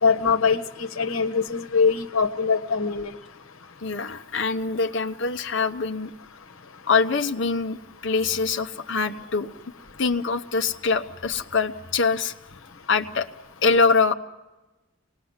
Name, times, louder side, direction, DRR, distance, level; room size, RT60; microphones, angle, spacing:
voice 1, 0.0-3.1, left 5 dB, 80° left, 9 dB, 1.3 m, -22 dB
voice 2, 3.8-6.1 6.9-9.5 10.0-12.3 12.9-13.3 13.6-14.1, left 4 dB, 60° left, 7 dB, 0.9 m, -24 dB
26.5 x 19.5 x 8.1 m, 1.1 s
head